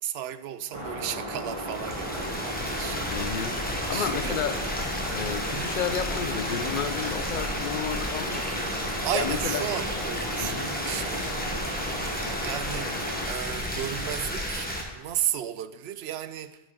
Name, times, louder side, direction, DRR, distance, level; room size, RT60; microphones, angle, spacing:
voice 1, 0.0-3.3 3.9-4.6 5.5-5.7 9.0-11.2 12.4-14.7 14.9-16.6, right 11 dB, 80° right, 0.8 m, -34 dB
sound 1, 0.7-13.2, right 1 dB, 30° right, 1.7 m, -35 dB
sound 2, 1.4-14.8, left 1 dB, 10° left, 1.2 m, -32 dB
sound 3, 1.9-2.4 3.0-4.3 4.8-5.3 5.7-6.1 6.6-6.8 7.4-7.5, left 4 dB, 75° left, 1.2 m, -44 dB
voice 2, 3.1-3.6 3.9-4.6 5.1-8.6 9.1-9.6 10.4-10.8, left 8 dB, 55° left, 0.7 m, -32 dB
10.0 x 6.3 x 4.9 m
omnidirectional pair, 1.0 m